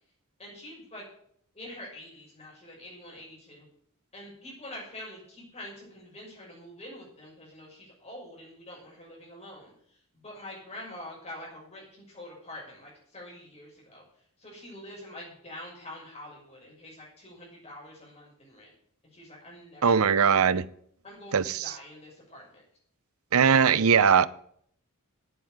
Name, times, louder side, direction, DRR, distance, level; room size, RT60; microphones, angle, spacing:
voice 1, 0.4-1.0 1.5-3.7 4.1-9.7 10.1-14.0 14.4-18.7 19.1-20.0 21.0-22.6, left 1 dB, 30° left, 6.0 m, -45 dB
voice 2, 19.8-20.7 21.3-21.7 23.3-24.3, right 6 dB, 75° right, 0.6 m, -20 dB
9.3 x 8.3 x 9.4 m
head